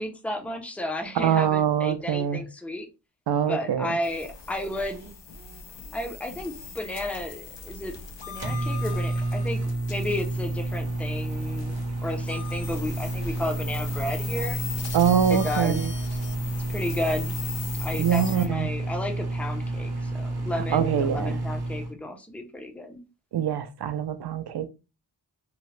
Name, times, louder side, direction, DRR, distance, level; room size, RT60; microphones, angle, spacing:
voice 1, 0.0-2.9 3.5-5.1 5.9-8.0 8.3-14.6 15.3-15.9 16.7-17.4 17.8-23.0, left 1 dB, 5° left, 0.4 m, -33 dB
voice 2, 1.1-2.4 3.3-3.9 14.9-15.9 18.0-18.7 20.6-21.4 23.3-24.7, right 8 dB, 65° right, 0.5 m, -24 dB
sound 1, 4.0-18.5, left 5 dB, 85° left, 0.6 m, -39 dB
Microwave oven, 6.8-21.9, right 2 dB, 35° right, 0.8 m, -30 dB
2.8 x 2.1 x 3.1 m
wide cardioid pair, 105°, 42 cm